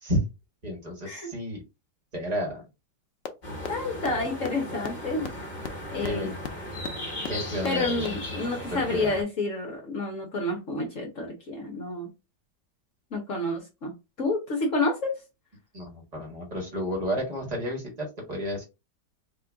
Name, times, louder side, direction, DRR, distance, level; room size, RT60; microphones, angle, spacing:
voice 1, 0.6-1.6 2.1-2.6 6.0-6.3 7.3-8.2 8.9-9.1 15.7-18.6, equal, 25° right, -1 dB, 1.4 m, -31 dB
sound 1, 3.2-3.3 3.6-3.7 4.0-4.1 4.4-4.5 4.8-4.9 5.2-5.3 5.6-5.7 6.0-6.1 6.4-6.5 6.8-6.9 7.2-7.3 7.6-7.7 8.0-8.1, left 9 dB, 80° left, 0.6 m, -33 dB
sound 2, 3.4-9.2, left 1 dB, 30° left, 1.0 m, -36 dB
voice 2, 3.7-5.3 5.9-6.3 7.6-12.1 13.1-15.1, left 2 dB, 50° left, -1 dB, 1.2 m, -29 dB
3.8 x 2.4 x 3.4 m, 0.26 s
omnidirectional pair, 1.9 m